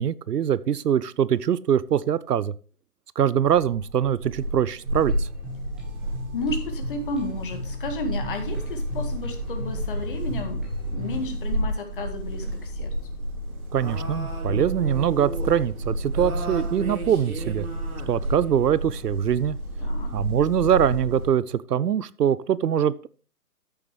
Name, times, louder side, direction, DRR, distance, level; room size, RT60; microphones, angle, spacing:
voice 1, 0.0-2.5 3.2-5.3 13.7-17.7 18.1-19.6 20.1-23.1, right 9 dB, 85° right, 18 dB, 0.6 m, -23 dB
sound 1, 3.3-21.3, right 1 dB, 65° right, 3.1 m, -31 dB
sound 2, 4.8-11.3, left 2 dB, ahead, 1.5 m, -41 dB
voice 2, 6.3-12.9 19.8-20.2, left 2 dB, 35° left, 6 dB, 1.8 m, -33 dB
13.5 x 7.1 x 3.2 m, 0.39 s
figure-of-eight pair, 150°, 46 cm